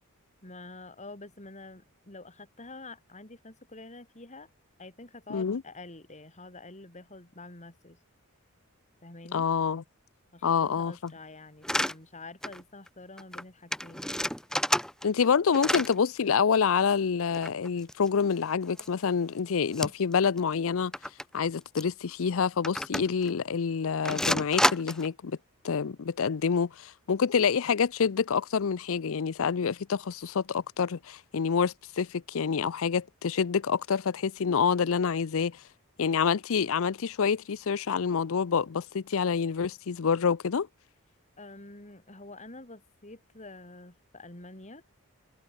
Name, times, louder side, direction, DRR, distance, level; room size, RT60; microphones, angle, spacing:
voice 1, 0.4-4.5 4.8-8.0 9.0-9.5 10.3-14.1 41.4-44.8, left 2 dB, 30° left, 4.0 m, -47 dB
voice 2, 5.3-5.6 9.3-9.8 10.4-11.1 15.0-20.9 21.3-25.4 25.6-35.6 36.0-40.7, left 6 dB, 65° left, 0.5 m, -27 dB
sound 1, 11.6-11.9 12.4-12.6 12.9-13.0 13.2-13.4 13.7-15.3 15.5-15.9 17.3-18.3 18.8-18.9 19.7-20.1 20.4-20.5 20.9-21.2 21.8-21.9 22.6-23.3 24.1-25.1, left 1 dB, 5° left, 1.8 m, -29 dB
head